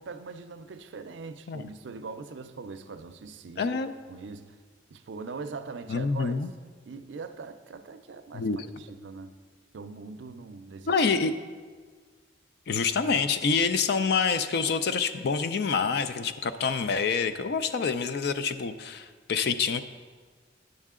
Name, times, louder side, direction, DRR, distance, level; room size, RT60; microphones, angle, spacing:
voice 1, 0.0-3.7 4.1-4.6 4.9-6.3 6.9-8.5 8.8-9.3 9.7-11.2, right 4 dB, 75° right, 10 dB, 0.5 m, -41 dB
voice 2, 3.6-3.9 5.9-6.5 8.3-8.6 10.9-11.3 12.7-19.8, left 5 dB, 60° left, 11 dB, 0.4 m, -27 dB
9.5 x 6.5 x 3.7 m, 1.5 s
head